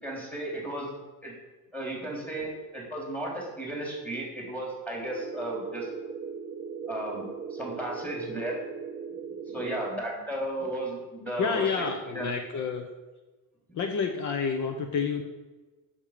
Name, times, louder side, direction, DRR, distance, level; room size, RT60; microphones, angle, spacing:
voice 1, 0.0-0.9 1.2-1.3 1.7-5.9 6.9-8.6 9.5-11.7 12.1-12.3, right 1 dB, 5° left, -2 dB, 3.6 m, -34 dB
sound 1, 5.0-10.0, right 6 dB, 20° right, 0.5 m, -39 dB
voice 2, 11.4-12.9 13.7-15.2, left 6 dB, 55° left, 6 dB, 1.0 m, -29 dB
8.3 x 7.4 x 6.7 m, 1.2 s
cardioid pair, 140°, 36 cm